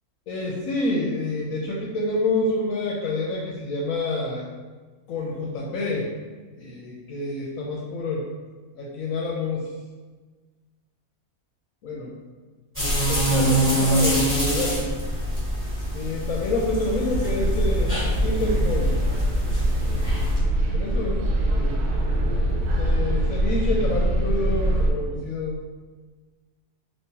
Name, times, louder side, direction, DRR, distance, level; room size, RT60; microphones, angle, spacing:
voice 1, 0.3-4.4 5.1-6.1 6.5-8.3 8.7-9.7 11.8-12.1 13.1-14.8 15.9-19.0 20.7-21.2 21.5-22.3 22.8-25.6, left 2 dB, 70° left, -3 dB, 0.9 m, -28 dB
sound 1, 12.7-20.4, right 1 dB, 10° right, 1.3 m, -25 dB
sound 2, 17.1-24.9, right 1 dB, 85° right, 1.1 m, -23 dB
3.6 x 2.8 x 2.8 m, 1.3 s
omnidirectional pair, 1.6 m